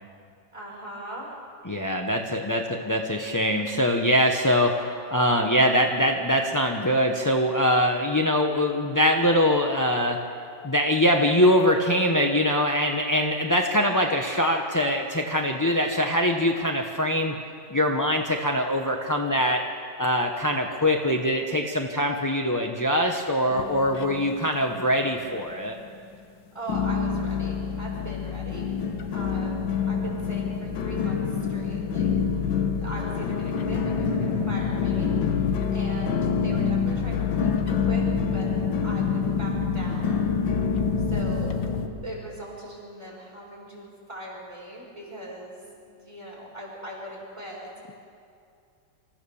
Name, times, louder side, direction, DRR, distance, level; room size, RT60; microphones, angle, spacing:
voice 1, 0.5-1.5 2.5-2.7 26.5-28.7 29.1-29.6 29.9-31.2 31.5-32.1 32.8-38.1 38.3-38.5 38.8-40.3 41.1-41.6 42.0-47.7, right 1 dB, 15° right, -4 dB, 5.6 m, -40 dB
voice 2, 1.7-10.2 10.6-17.3 17.7-19.6 20.0-25.7, equal, 20° left, 2 dB, 0.5 m, -23 dB
sound 1, 23.5-24.5 24.7-25.4 25.9-26.0 26.7-41.9, left 6 dB, 75° left, 1.9 m, -26 dB
26.5 x 15.0 x 7.1 m, 2.4 s
omnidirectional pair, 2.1 m